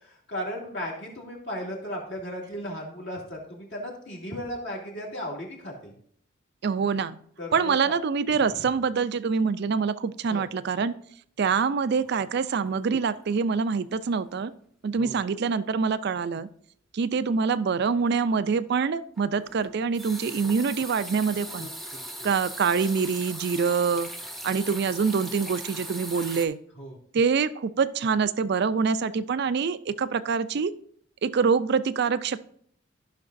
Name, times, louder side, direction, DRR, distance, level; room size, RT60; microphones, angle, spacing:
voice 1, 0.1-5.9 7.4-7.8 8.6-8.7 10.3-10.4 15.0-15.2 21.6-21.7 26.8-26.9, equal, 60° left, -2 dB, 2.5 m, -35 dB
voice 2, 6.6-7.2 7.5-10.9 11.4-14.5 14.8-16.5 16.9-21.7 22.2-24.1 24.4-26.6 27.1-30.7 31.2-32.5, right 5 dB, 55° right, 14 dB, 0.4 m, -25 dB
sound 1, 11.9-13.5 13.8-14.1 14.4-14.5 19.1-26.5, right 1 dB, ahead, 0.7 m, -39 dB
14.5 x 5.9 x 2.6 m, 0.63 s
head